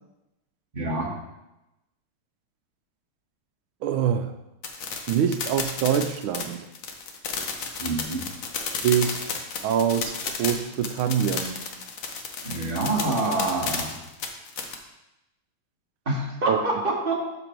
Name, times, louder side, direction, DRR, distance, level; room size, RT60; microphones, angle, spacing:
voice 1, 0.7-1.2 7.8-8.2 12.4-14.0 16.0-17.1, right 2 dB, 25° right, -2 dB, 1.7 m, -26 dB
voice 2, 3.8-4.3 5.1-6.7 8.8-9.4 9.6-11.6 16.5-16.6, right 9 dB, 80° right, 9 dB, 1.5 m, -24 dB
sound 1, 4.6-14.7, left 5 dB, 65° left, 1.6 m, -32 dB
12.0 x 4.2 x 4.5 m, 0.94 s
omnidirectional pair, 2.3 m